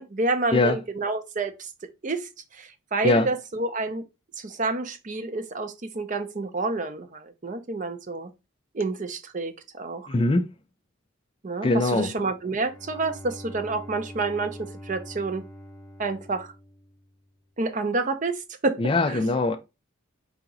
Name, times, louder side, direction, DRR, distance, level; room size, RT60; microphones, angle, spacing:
voice 1, 0.0-1.7 2.0-4.0 4.4-8.3 8.7-10.1 11.4-15.4 16.0-16.5 17.6-18.8 19.1-19.2, right 3 dB, 35° right, 0.5 m, -29 dB
voice 2, 10.1-10.5 11.6-12.1 18.8-19.6, left 2 dB, 25° left, 0.3 m, -22 dB
Bowed string instrument, 12.4-17.4, equal, 5° left, 0.8 m, -44 dB
4.7 x 2.9 x 3.8 m
head